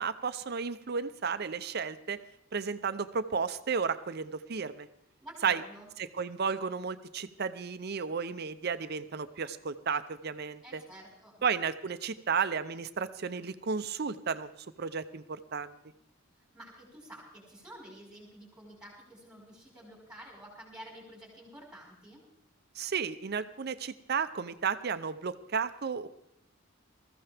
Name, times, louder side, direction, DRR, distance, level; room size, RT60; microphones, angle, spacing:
voice 1, 0.0-2.2 2.5-4.9 5.4-5.6 6.1-10.8 11.4-14.5 14.8-15.7 22.8-26.1, right 5 dB, 55° right, 11 dB, 0.6 m, -33 dB
voice 2, 5.2-5.9 10.6-11.3 16.5-22.2, right 1 dB, 5° right, -2 dB, 4.8 m, -50 dB
20.0 x 14.5 x 3.5 m, 0.74 s
head